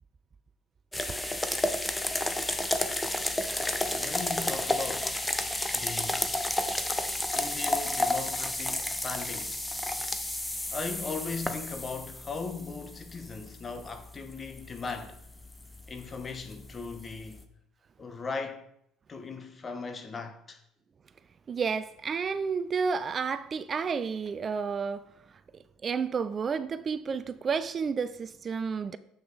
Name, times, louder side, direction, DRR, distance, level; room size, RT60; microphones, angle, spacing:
sound 1, 0.9-17.4, left 1 dB, 10° left, 0.9 m, -32 dB
voice 1, 3.6-5.2 5.7-6.3 7.3-9.6 10.7-15.2 15.9-17.5 18.0-18.7 19.1-20.6, left 4 dB, 35° left, 1.1 m, -38 dB
voice 2, 21.5-25.0 25.8-29.0, right 5 dB, 40° right, 0.4 m, -31 dB
7.7 x 6.2 x 4.0 m
hypercardioid pair, 65°, 0 cm